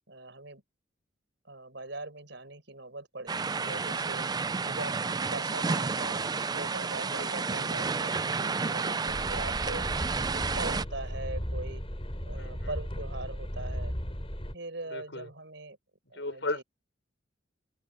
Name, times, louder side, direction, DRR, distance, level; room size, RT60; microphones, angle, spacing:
voice 1, 0.1-0.6 1.4-4.3 4.6-9.9 10.3-11.8 12.2-14.0 14.5-15.8 16.1-16.6, right 2 dB, 70° right, 7.1 m, -41 dB
sound 1, 3.3-10.8, right 4 dB, 20° right, 0.4 m, -31 dB
voice 2, 7.2-7.6 12.3-12.7 14.9-15.3 16.2-16.6, left 2 dB, 70° left, 6.0 m, -36 dB
sound 2, 9.1-14.5, equal, 30° left, 5.8 m, -36 dB
open air
head